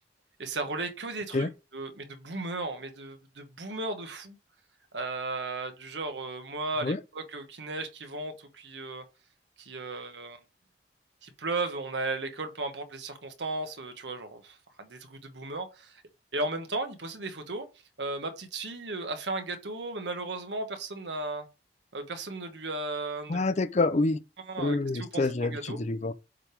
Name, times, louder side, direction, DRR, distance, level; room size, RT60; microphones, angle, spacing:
voice 1, 0.4-1.5 1.7-4.4 4.9-9.0 9.6-10.4 11.2-16.0 16.3-17.7 18.0-21.5 21.9-23.4 24.5-25.8, right 2 dB, 85° right, 1.3 m, -35 dB
voice 2, 23.3-24.2 24.6-26.1, left 2 dB, 40° left, 0.5 m, -27 dB
7.4 x 3.4 x 4.8 m
head